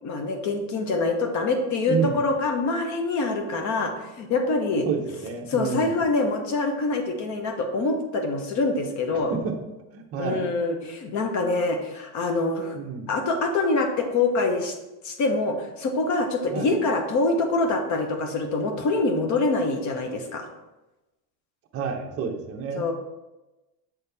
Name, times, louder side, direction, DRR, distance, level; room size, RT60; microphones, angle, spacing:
voice 1, 0.0-4.9 5.5-9.3 10.2-12.8 13.1-14.7 15.0-20.5 22.8-22.9, left 3 dB, 40° left, 5 dB, 0.9 m, -25 dB
voice 2, 1.9-2.2 4.8-5.9 9.1-9.6 9.9-10.5 12.8-13.1 16.5-16.7 21.7-22.9, right 6 dB, 30° right, 3 dB, 0.7 m, -30 dB
7.2 x 4.1 x 3.4 m, 1.0 s
supercardioid pair, 140°, 47 cm